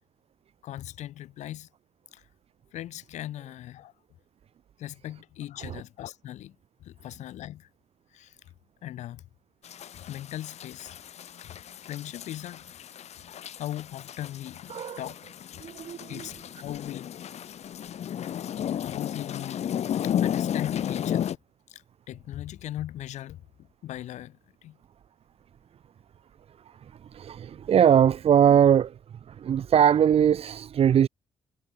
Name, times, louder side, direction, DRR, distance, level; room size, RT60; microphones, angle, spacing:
voice 1, 0.6-1.7 2.1-2.3 2.7-3.9 4.8-7.7 8.1-8.5 8.8-9.2 9.9-11.0 11.4-11.6 11.9-12.8 13.6-15.2 15.5-15.7 16.1-16.4 16.6-17.1 18.8-19.6 19.9-21.4 21.7-23.4 23.8-24.8, left 13 dB, 90° left, 3.8 m, -39 dB
sound 1, 9.6-21.4, left 10 dB, 70° left, 4.9 m, -33 dB
voice 2, 15.6-16.3 27.0-29.0 29.3-31.1, right 9 dB, 60° right, 1.1 m, -21 dB
cardioid pair, 100°, 12 cm